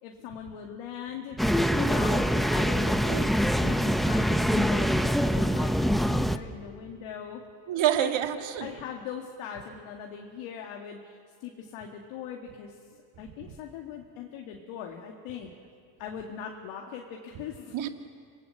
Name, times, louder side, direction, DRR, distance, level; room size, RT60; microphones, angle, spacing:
voice 1, 0.0-1.4 1.7-3.3 3.6-7.4 8.0-8.1 8.6-15.5 16.0-17.7, left 8 dB, 85° left, 1 dB, 2.3 m, -40 dB
sound 1, 1.4-6.4, equal, ahead, 1.0 m, -24 dB
voice 2, 7.7-8.7 17.7-17.9, right 12 dB, 65° right, 6 dB, 2.2 m, -27 dB
26.5 x 19.5 x 8.0 m, 2.3 s
supercardioid pair, 85°, 49 cm